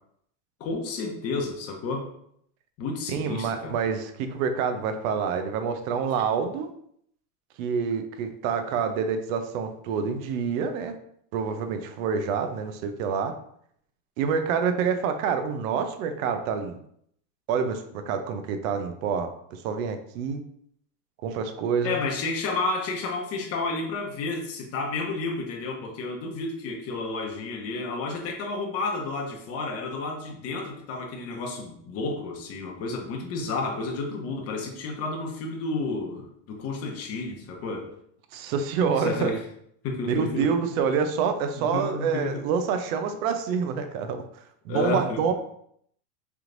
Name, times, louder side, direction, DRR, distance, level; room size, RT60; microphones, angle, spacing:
voice 1, 0.6-2.1 2.8-3.8 21.8-37.9 38.8-39.4 39.8-40.5 41.6-42.4 44.7-45.2, left 3 dB, 30° left, 1 dB, 0.9 m, -31 dB
voice 2, 3.1-6.7 7.6-10.9 11.3-13.3 14.2-16.8 17.5-20.4 21.2-22.0 38.3-39.3 40.0-44.2 44.7-45.3, right 6 dB, 55° right, 7 dB, 0.7 m, -27 dB
3.5 x 3.0 x 3.8 m, 0.69 s
supercardioid pair, 140°, 48 cm